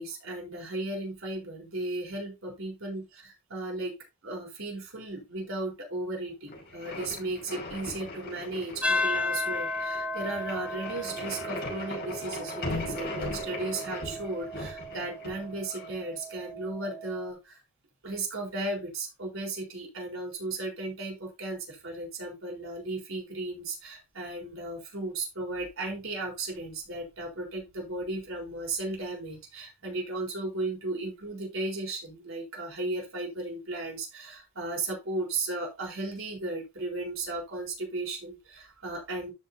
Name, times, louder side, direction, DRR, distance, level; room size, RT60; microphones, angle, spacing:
voice 1, 0.0-4.0 4.2-17.6 18.0-39.3, right 2 dB, 70° right, -1 dB, 4.1 m, -35 dB
sound 1, 6.5-15.9, left 2 dB, 45° left, 5.7 m, -38 dB
sound 2, 8.8-17.3, left 2 dB, 5° right, 0.7 m, -35 dB
13.0 x 5.5 x 2.7 m, 0.24 s
head